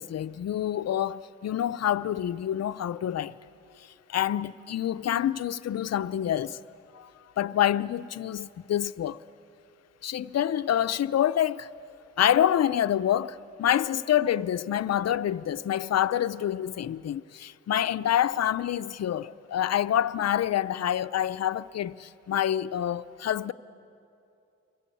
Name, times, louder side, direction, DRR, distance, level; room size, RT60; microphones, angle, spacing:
voice 1, 0.0-3.4 4.1-6.6 6.9-7.1 7.4-9.2 10.0-11.7 12.2-23.5, left 10 dB, 55° left, 0.7 m, -27 dB
30.0 x 23.0 x 8.5 m
cardioid pair, 85°, 31 cm